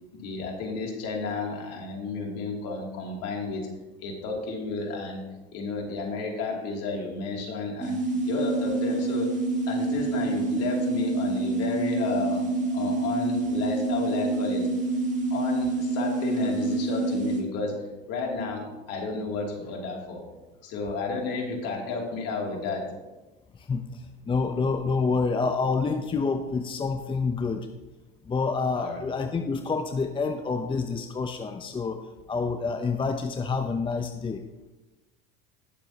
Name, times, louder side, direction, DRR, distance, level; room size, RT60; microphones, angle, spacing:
voice 1, 0.1-3.7 4.0-5.2 5.5-9.3 9.7-12.5 12.7-14.7 15.3-20.2 20.6-22.9 28.8-29.0, left 4 dB, 55° left, 0 dB, 2.9 m, -32 dB
sound 1, 7.8-17.4, right 2 dB, 25° right, 2.3 m, -27 dB
voice 2, 23.5-27.7 28.2-34.4, left 4 dB, 15° left, 7 dB, 0.7 m, -28 dB
18.5 x 6.9 x 2.9 m, 1.1 s
hypercardioid pair, 85°, 29 cm